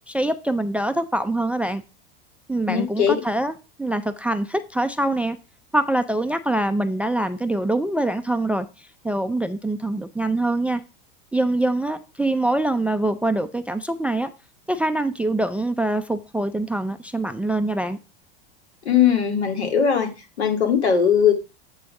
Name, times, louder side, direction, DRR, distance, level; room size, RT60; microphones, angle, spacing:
voice 1, 0.1-1.8 2.5-3.5 3.8-5.4 5.7-10.8 11.3-14.3 14.7-18.0, right 1 dB, 5° right, 0.3 m, -24 dB
voice 2, 2.7-3.2 18.8-20.1 20.4-21.3, left 8 dB, 85° left, 2.2 m, -19 dB
8.3 x 3.8 x 5.3 m
hypercardioid pair, 100°, 32 cm